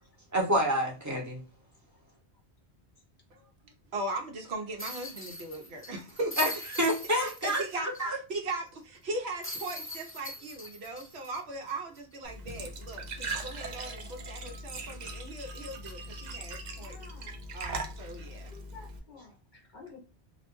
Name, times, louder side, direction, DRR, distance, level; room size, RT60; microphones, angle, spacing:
voice 1, 0.3-1.4 6.4-6.5 6.8-8.2, equal, 20° right, -2 dB, 0.7 m, -28 dB
voice 2, 3.9-6.4 7.2-17.0 17.2-18.5, right 2 dB, 75° right, 3 dB, 0.9 m, -39 dB
sound 1, 4.8-8.0 8.3-8.4 9.4-12.1 12.5-12.6 14.8-15.0, left 1 dB, 15° left, 0.7 m, -41 dB
Glass / Trickle dribble / Fill (with liquid), 12.2-19.0, right 2 dB, 55° right, 0.5 m, -40 dB
voice 3, 16.8-17.4 18.5-20.0, left 4 dB, 55° left, 1 dB, 0.7 m, -51 dB
2.4 x 2.1 x 2.9 m, 0.35 s
omnidirectional pair, 1.1 m